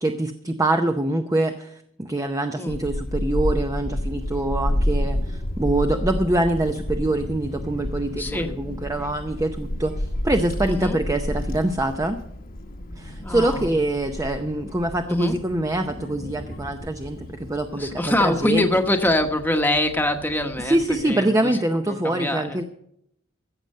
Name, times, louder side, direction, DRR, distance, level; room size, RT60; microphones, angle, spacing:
voice 1, 0.0-12.2 13.0-18.7 20.6-22.6, right 1 dB, 15° right, 6 dB, 0.6 m, -24 dB
Child speech kid speaking / Wind, 2.7-21.0, left 1 dB, 45° left, 1.2 m, -31 dB
voice 2, 8.0-8.5 10.6-11.0 13.2-13.7 15.1-15.4 17.7-21.6 21.9-22.6, left 1 dB, 10° left, 4 dB, 1.1 m, -24 dB
14.5 x 7.7 x 6.5 m, 0.72 s
head